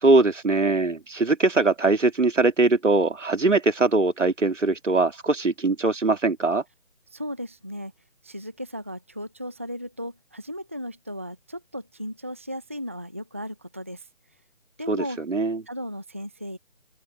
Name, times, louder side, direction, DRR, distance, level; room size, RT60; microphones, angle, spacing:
voice 1, 0.0-6.6 14.9-15.6, right 3 dB, 70° right, 2.1 m, -21 dB
voice 2, 7.1-7.9 8.2-14.1 14.8-15.2 15.7-16.6, equal, 10° right, 0.6 m, -35 dB
open air
figure-of-eight pair, 150°, 38 cm